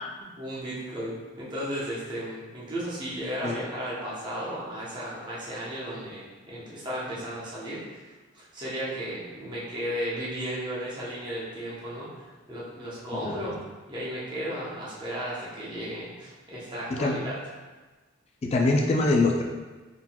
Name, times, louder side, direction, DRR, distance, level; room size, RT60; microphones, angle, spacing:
voice 1, 0.2-13.6 13.9-17.4, equal, 20° right, -8 dB, 0.8 m, -35 dB
voice 2, 18.4-19.4, left 2 dB, 30° left, 1 dB, 0.3 m, -24 dB
4.3 x 3.8 x 2.3 m, 1.2 s
head